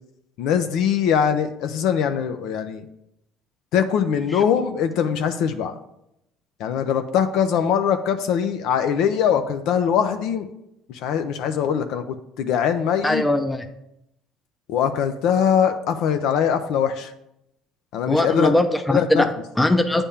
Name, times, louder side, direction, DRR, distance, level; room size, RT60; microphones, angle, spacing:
voice 1, 0.4-2.8 3.7-5.7 6.6-10.5 10.9-13.2 14.7-17.1 17.9-18.5 18.9-19.2, left 8 dB, 75° left, 8 dB, 0.5 m, -22 dB
voice 2, 13.0-13.7 18.1-20.0, left 1 dB, 10° left, 7 dB, 0.5 m, -21 dB
8.5 x 3.5 x 5.6 m, 0.83 s
cardioid pair, 100°, 0 cm